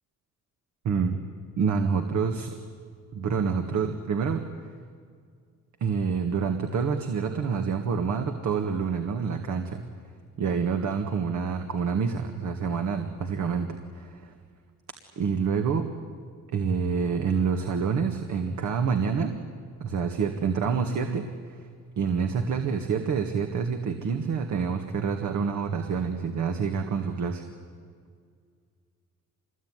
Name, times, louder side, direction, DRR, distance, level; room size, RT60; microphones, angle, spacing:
voice 1, 0.8-1.2 1.6-2.5 3.1-4.5 5.8-9.8 10.4-14.3 15.1-15.9 16.5-19.4 19.8-21.6 22.0-27.4, right 6 dB, 70° right, 5 dB, 1.9 m, -27 dB
26.0 x 21.0 x 9.7 m, 2.1 s
cardioid pair, 90°, 30 cm